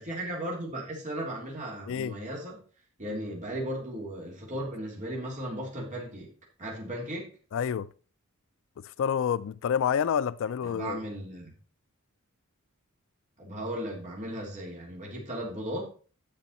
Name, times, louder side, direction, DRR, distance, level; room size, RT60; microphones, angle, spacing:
voice 1, 0.0-2.6 3.0-6.3 6.6-7.3 10.6-11.5 13.4-15.8, right 1 dB, 35° right, 3.5 m, -36 dB
voice 2, 7.5-7.9 8.8-11.0, left 8 dB, 65° left, 0.3 m, -28 dB
10.5 x 7.0 x 4.3 m
head